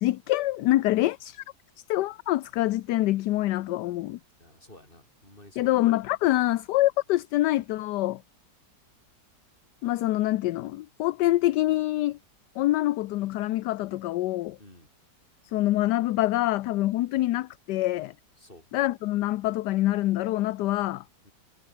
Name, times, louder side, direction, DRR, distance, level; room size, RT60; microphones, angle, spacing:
voice 1, 0.0-1.4 1.9-4.2 5.6-8.2 9.8-12.2 12.6-14.6 15.5-18.1 18.7-21.0, left 16 dB, 75° left, 1.2 m, -25 dB
voice 2, 4.4-5.7 14.6-14.9 18.4-18.7 21.2-21.3, left 1 dB, 30° left, 7.8 m, -52 dB
omnidirectional pair, 1.9 m